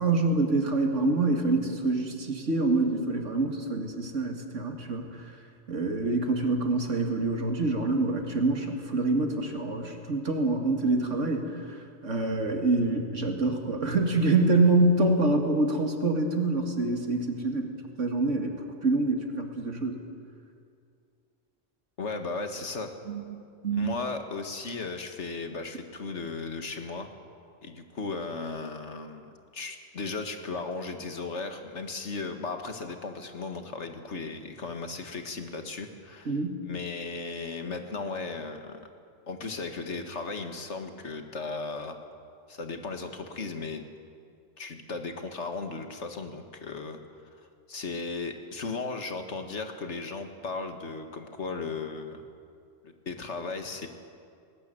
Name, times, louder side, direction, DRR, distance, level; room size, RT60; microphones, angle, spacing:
voice 1, 0.0-5.1 5.7-11.8 12.0-17.7 18.0-18.6 18.8-20.0 23.1-23.9 36.3-36.6, right 2 dB, 75° right, 4 dB, 2.4 m, -26 dB
voice 2, 22.0-23.0 23.7-27.1 27.6-36.3 36.7-38.9 39.3-42.0 42.5-43.9 44.6-47.0 47.7-52.2 52.8-53.9, left 4 dB, 65° left, 6 dB, 2.0 m, -36 dB
19.5 x 18.5 x 9.1 m, 2.4 s
omnidirectional pair, 1.3 m